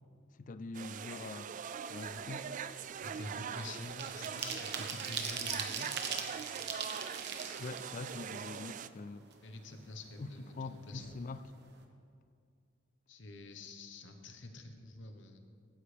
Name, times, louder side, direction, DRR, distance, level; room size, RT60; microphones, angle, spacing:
voice 1, 0.4-1.5 1.9-2.5 7.6-9.3 10.2-10.3 10.5-11.4, left 3 dB, 40° left, 13 dB, 0.4 m, -43 dB
sound 1, 0.7-8.9, right 7 dB, 40° right, 0.3 m, -42 dB
sound 2, 2.1-2.2 2.5-8.9 9.3-9.4 9.7-10.7 11.0-11.1 11.4-11.7, right 6 dB, 60° right, 1.1 m, -41 dB
voice 2, 3.0-5.9 9.4-11.2 13.1-15.4, left 2 dB, 65° left, 5 dB, 1.1 m, -47 dB
15.0 x 9.5 x 3.4 m, 2.3 s
head